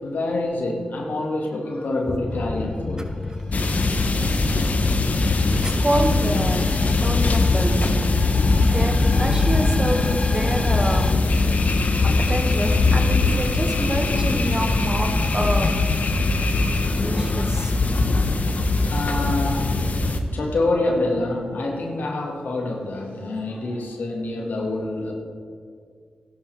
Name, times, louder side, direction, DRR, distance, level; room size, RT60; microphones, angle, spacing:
voice 1, 0.0-3.2 3.8-4.7 18.8-19.8 20.3-25.1, left 2 dB, 75° left, 0 dB, 1.9 m, -27 dB
sound 1, 2.1-11.1, left 3 dB, 30° left, 0.6 m, -29 dB
sound 2, 3.5-20.2, left 3 dB, 55° left, 1.1 m, -21 dB
voice 2, 5.5-7.9 8.6-11.1 12.0-15.9 16.9-17.7, right 1 dB, 20° right, 4 dB, 1.8 m, -27 dB
16.5 x 11.0 x 3.4 m, 2.2 s
cardioid pair, 45°, 3 cm